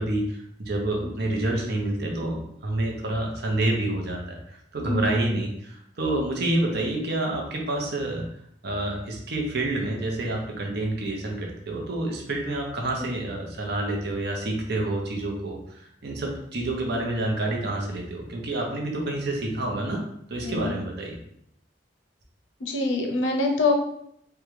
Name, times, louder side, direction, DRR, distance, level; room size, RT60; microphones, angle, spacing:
voice 1, 0.0-8.2 8.6-20.0 20.3-21.2, right 2 dB, 60° right, 1 dB, 0.7 m, -28 dB
voice 2, 22.6-23.7, left 3 dB, 90° left, 3 dB, 0.6 m, -25 dB
3.6 x 2.3 x 3.1 m, 0.73 s
head